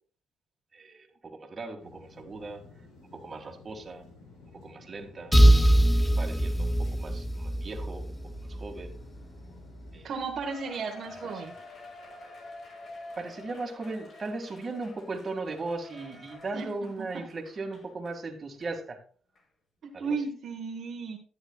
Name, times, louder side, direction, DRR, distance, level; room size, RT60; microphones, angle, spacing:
voice 1, 0.7-2.7 3.1-4.1 4.5-5.4 5.8-8.9 9.9-10.1 11.1-11.5 13.2-19.0 19.9-20.2, right 3 dB, 35° right, 3 dB, 2.0 m, -38 dB
sound 1, 1.8-10.1, left 3 dB, 85° left, 4.0 m, -53 dB
sound 2, 5.3-9.0, right 1 dB, 10° left, 0.8 m, -22 dB
voice 2, 10.0-11.5 16.5-16.7 19.8-21.2, right 4 dB, 60° right, 2 dB, 1.3 m, -34 dB
Cheering, 10.4-18.2 18.6-18.7 19.4-19.5, left 2 dB, 55° left, 2.0 m, -48 dB
11.5 x 9.6 x 2.3 m, 0.42 s
cardioid pair, 90°, 0 cm